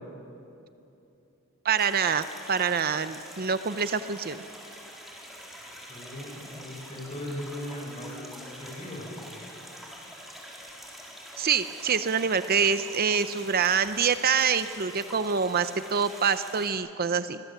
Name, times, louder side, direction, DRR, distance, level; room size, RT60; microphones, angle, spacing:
voice 1, 1.6-4.4 11.4-17.4, right 6 dB, 45° right, 11 dB, 0.7 m, -26 dB
sound 1, 1.8-16.7, equal, ahead, 4.2 m, -45 dB
voice 2, 5.9-8.2 8.6-9.1, left 1 dB, 30° left, -1 dB, 7.4 m, -38 dB
26.5 x 22.5 x 7.9 m, 2.9 s
head